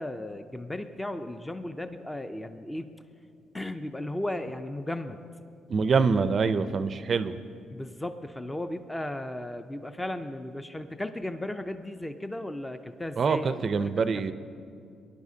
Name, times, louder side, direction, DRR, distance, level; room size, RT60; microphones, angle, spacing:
voice 1, 0.0-2.9 3.5-5.2 7.7-13.9, left 1 dB, 10° left, 9 dB, 0.4 m, -35 dB
voice 2, 5.7-7.4 13.2-14.3, right 5 dB, 45° right, 12 dB, 0.4 m, -25 dB
18.5 x 10.5 x 2.7 m, 2.4 s
cardioid pair, 90°, 0 cm